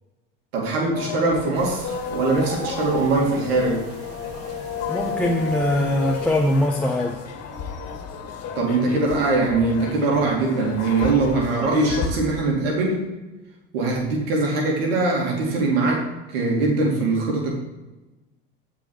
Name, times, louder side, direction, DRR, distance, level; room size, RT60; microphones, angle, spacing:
voice 1, 0.5-3.8 8.6-13.0 13.7-17.5, right 3 dB, 80° right, -1 dB, 2.4 m, -22 dB
sound 1, 1.0-12.1, left 6 dB, 55° left, 2.0 m, -32 dB
sound 2, 1.5-6.7, right 5 dB, 55° right, 1.7 m, -38 dB
voice 2, 4.9-7.2, left 1 dB, 5° left, 1 dB, 1.2 m, -22 dB
14.0 x 4.9 x 4.6 m, 1.1 s
hypercardioid pair, 85°, 29 cm